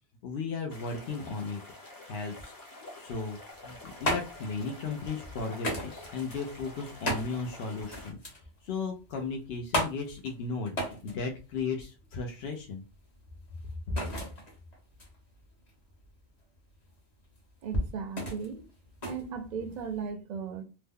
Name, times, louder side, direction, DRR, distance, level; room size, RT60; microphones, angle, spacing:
voice 1, 0.2-1.6 2.0-2.5 2.9-3.4 3.6-12.8, left 4 dB, 70° left, 0.8 m, -35 dB
sound 1, 0.7-8.1, left 2 dB, 20° left, 0.7 m, -48 dB
sound 2, 3.5-20.1, equal, 40° left, 1.0 m, -37 dB
voice 2, 17.6-18.7 19.0-20.6, right 6 dB, 50° right, 0.6 m, -36 dB
2.9 x 2.1 x 3.5 m
omnidirectional pair, 1.2 m